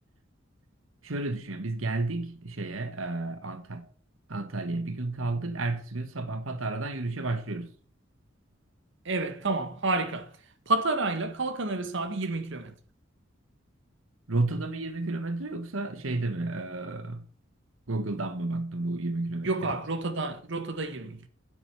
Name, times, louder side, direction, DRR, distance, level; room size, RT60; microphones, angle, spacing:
voice 1, 1.0-3.9 4.3-7.7 14.3-17.2 17.9-19.7, right 2 dB, 85° right, 1.5 m, -32 dB
voice 2, 9.0-10.3 10.7-12.7 19.4-21.3, right 2 dB, 65° right, 1.4 m, -29 dB
10.0 x 8.1 x 6.8 m
head